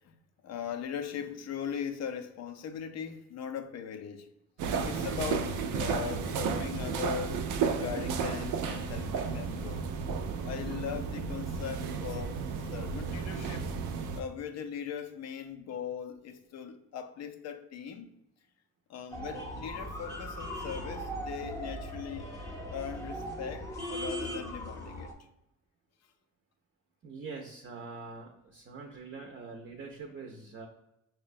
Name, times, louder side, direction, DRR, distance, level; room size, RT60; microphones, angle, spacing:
voice 1, 0.0-4.3 4.8-7.5 7.7-9.9 10.4-13.7 14.1-18.1 18.9-22.3 22.7-25.1, left 8 dB, 60° left, 0.5 m, -39 dB
sound 1, 4.6-14.2, right 5 dB, 85° right, 0.5 m, -33 dB
sound 2, 19.1-25.1, equal, 10° left, 0.7 m, -39 dB
voice 2, 27.0-30.7, right 4 dB, 40° right, 0.6 m, -44 dB
5.4 x 2.2 x 2.5 m
cardioid pair, 90°, 30 cm